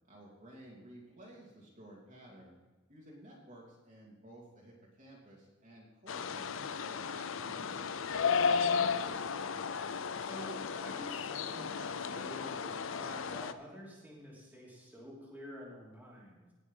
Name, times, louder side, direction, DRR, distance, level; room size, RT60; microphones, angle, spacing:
voice 1, 0.1-2.5 2.9-7.9, right 1 dB, 40° right, -3 dB, 2.7 m, -54 dB
sound 1, 6.1-13.5, left 6 dB, 70° left, 0.6 m, -34 dB
voice 2, 8.5-9.7 10.2-16.5, equal, 10° right, -5 dB, 3.0 m, -49 dB
18.0 x 6.3 x 5.4 m, 1.2 s
head